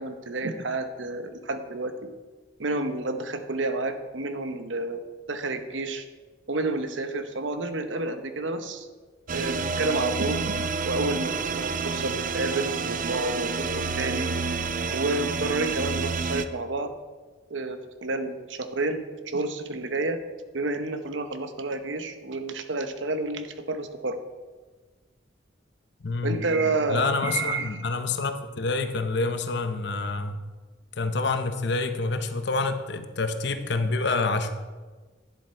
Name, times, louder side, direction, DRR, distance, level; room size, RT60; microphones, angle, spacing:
voice 1, 0.0-1.9 2.6-5.0 5.3-6.1 6.5-8.9 9.3-10.5 10.8-13.7 14.0-14.3 14.9-16.9 17.5-20.2 20.5-24.2 26.2-27.8, right 2 dB, 80° right, 8 dB, 0.9 m, -30 dB
sound 1, 9.3-16.4, right 4 dB, 45° right, 0.5 m, -29 dB
voice 2, 26.0-26.4 26.9-30.4 31.0-34.5, left 3 dB, 65° left, 8 dB, 0.8 m, -27 dB
10.5 x 7.7 x 4.5 m, 1.3 s
head